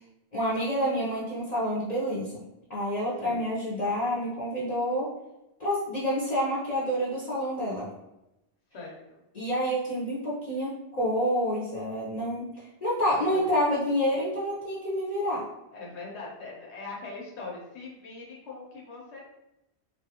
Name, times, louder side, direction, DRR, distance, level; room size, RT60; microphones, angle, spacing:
voice 1, 0.3-5.1 5.6-7.9 9.3-15.4, equal, 45° left, -8 dB, 0.7 m, -28 dB
voice 2, 8.7-9.2 13.3-13.5 15.7-19.3, left 3 dB, 80° left, -2 dB, 1.1 m, -41 dB
3.0 x 2.3 x 2.8 m, 0.92 s
omnidirectional pair, 1.1 m